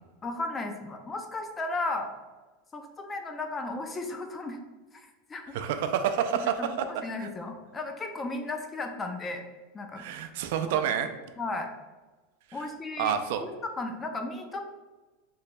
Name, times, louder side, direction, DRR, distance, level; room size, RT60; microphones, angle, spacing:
voice 1, 0.2-2.1 2.7-4.6 4.9-5.6 6.6-9.5 9.7-10.0 10.7-10.8 11.4-11.7 12.5-13.1 13.4-14.6, left 2 dB, 15° left, 5 dB, 0.4 m, -35 dB
voice 2, 5.5-6.5 7.2-7.3 10.0-11.1 13.0-13.5, right 9 dB, 70° right, 8 dB, 0.3 m, -28 dB
3.2 x 2.2 x 4.1 m, 1.2 s
supercardioid pair, 150°, 0 cm